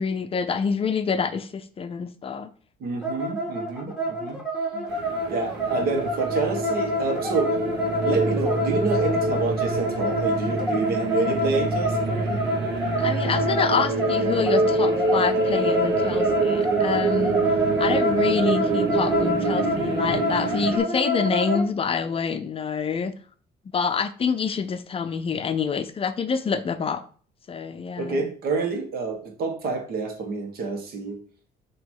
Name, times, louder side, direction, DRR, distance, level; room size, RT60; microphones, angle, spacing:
voice 1, 0.0-2.5 4.7-4.9 13.0-17.4 17.8-23.1 23.7-27.0 27.5-28.2, left 6 dB, 35° left, 10 dB, 0.5 m, -27 dB
voice 2, 2.8-4.4 5.3-7.6 8.0-12.4 28.0-31.2, right 3 dB, 65° right, 4 dB, 1.5 m, -28 dB
sound 1, 3.0-21.7, equal, 5° right, 1.5 m, -27 dB
sound 2, 4.9-20.8, right 3 dB, 80° right, 1.3 m, -26 dB
6.1 x 3.0 x 5.5 m, 0.44 s
cardioid pair, 110°, 17 cm